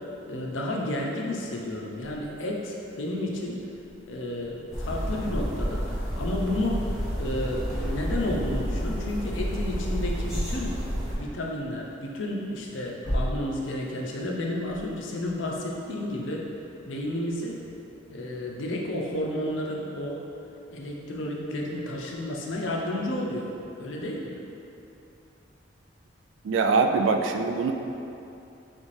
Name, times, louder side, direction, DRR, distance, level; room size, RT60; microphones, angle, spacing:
voice 1, 0.0-3.6 4.0-10.8 11.2-16.4 16.9-17.6 18.1-20.2 20.7-23.5 23.8-24.4, left 1 dB, 85° left, -1 dB, 0.6 m, -31 dB
sound 1, 2.0-17.8, equal, 70° left, 1.0 m, -42 dB
sound 2, 4.7-11.2, equal, 5° right, 0.9 m, -30 dB
voice 2, 26.4-27.7, right 4 dB, 75° right, 5 dB, 0.3 m, -23 dB
4.1 x 3.3 x 3.2 m, 2.8 s
head